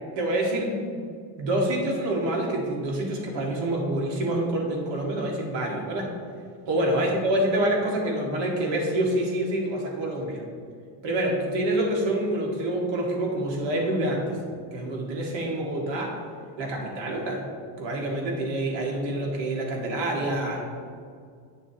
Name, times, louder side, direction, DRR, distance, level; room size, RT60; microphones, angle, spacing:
voice 1, 0.1-0.9 1.4-6.1 6.7-10.4 11.0-14.4 14.7-16.2 16.6-17.4 17.8-20.6, right 1 dB, 60° right, -1 dB, 1.9 m, -27 dB
10.0 x 6.6 x 2.9 m, 2.2 s
cardioid pair, 135°, 47 cm